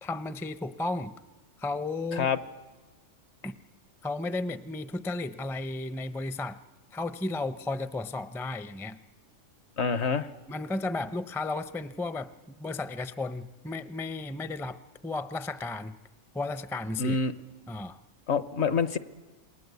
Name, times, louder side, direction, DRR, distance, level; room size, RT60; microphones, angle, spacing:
voice 1, 0.0-1.1 1.6-2.3 3.4-3.5 4.0-6.6 6.9-9.0 10.5-12.3 12.6-16.0 16.3-17.2 17.7-18.0, left 2 dB, 5° left, 12 dB, 0.4 m, -34 dB
voice 2, 9.8-10.3 17.0-17.3 18.3-19.0, left 5 dB, 65° left, 13 dB, 1.3 m, -26 dB
28.0 x 21.5 x 8.2 m, 1.2 s
omnidirectional pair, 1.3 m